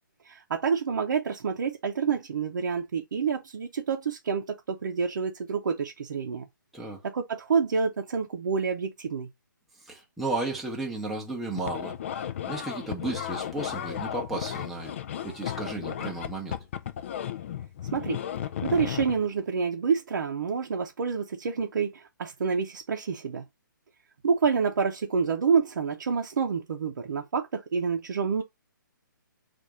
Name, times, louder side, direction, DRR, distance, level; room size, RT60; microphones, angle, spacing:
voice 1, 0.2-6.4 7.0-9.3 17.9-18.2 18.6-23.4 24.2-28.4, right 5 dB, 65° right, 0.7 m, -28 dB
voice 2, 9.9-12.0 12.5-14.9 15.2-16.6, right 2 dB, ahead, 0.8 m, -33 dB
sound 1, 11.6-19.2, left 10 dB, 35° left, 0.4 m, -34 dB
4.2 x 2.6 x 4.7 m
hypercardioid pair, 155°, 11 cm